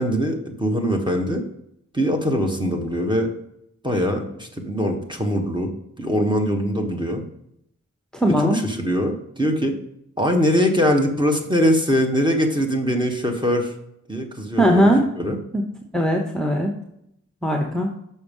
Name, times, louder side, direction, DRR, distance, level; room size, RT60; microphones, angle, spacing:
voice 1, 0.0-1.4 1.9-3.3 3.8-5.7 6.0-7.2 8.2-9.8 10.2-13.7 14.1-15.4, equal, 15° right, 2 dB, 1.4 m, -22 dB
voice 2, 8.2-8.6 14.6-15.0 15.5-15.6 15.9-16.7 17.4-17.9, equal, ahead, 2 dB, 0.9 m, -19 dB
6.7 x 5.6 x 5.3 m, 0.76 s
wide cardioid pair, 65°, 30 cm